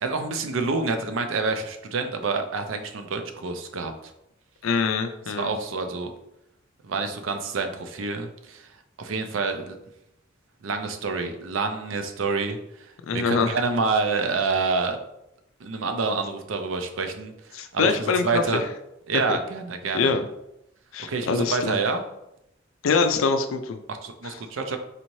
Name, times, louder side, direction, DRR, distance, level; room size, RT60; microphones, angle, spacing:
voice 1, 0.0-4.1 5.3-6.1 6.8-8.7 9.0-9.8 10.6-12.6 13.1-15.0 15.6-18.6 19.1-20.2 21.1-22.0 23.9-24.8, right 4 dB, 70° right, 6 dB, 0.5 m, -27 dB
voice 2, 4.6-5.5 13.0-13.6 17.5-18.4 19.9-20.3 20.9-21.8 22.8-23.8 24.2-24.4, left 5 dB, 75° left, 8 dB, 0.4 m, -24 dB
4.1 x 2.7 x 3.0 m, 0.83 s
head